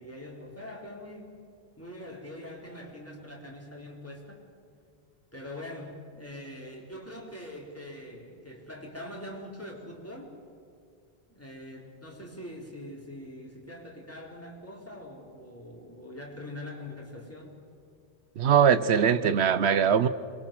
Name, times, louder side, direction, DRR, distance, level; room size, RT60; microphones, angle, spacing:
voice 1, 0.0-1.4 1.8-4.4 5.3-10.3 11.3-17.6, left 1 dB, 15° left, 4.3 m, -43 dB
voice 2, 18.4-20.1, right 7 dB, 80° right, 1.1 m, -21 dB
27.0 x 23.0 x 7.7 m
omnidirectional pair, 1.1 m